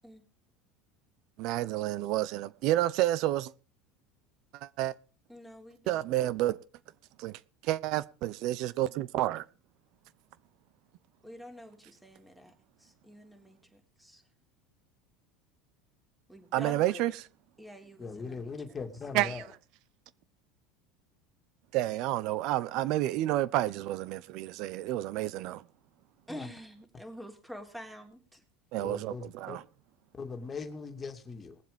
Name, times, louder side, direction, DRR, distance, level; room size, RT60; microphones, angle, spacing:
voice 1, 1.4-3.5 4.6-4.9 5.9-6.6 7.2-9.4 16.5-17.2 19.1-19.4 21.7-25.6 28.7-29.6, right 15 dB, 60° right, 0.9 m, -30 dB
voice 2, 5.3-6.1 11.2-12.5 12.8-14.2 16.3-17.0 17.6-18.8 26.3-28.4, equal, 5° right, 3.6 m, -47 dB
voice 3, 18.0-19.5 26.3-26.5 28.8-29.6 30.1-31.6, left 4 dB, 25° left, 2.6 m, -40 dB
20.5 x 7.5 x 5.2 m
supercardioid pair, 115°, 0 cm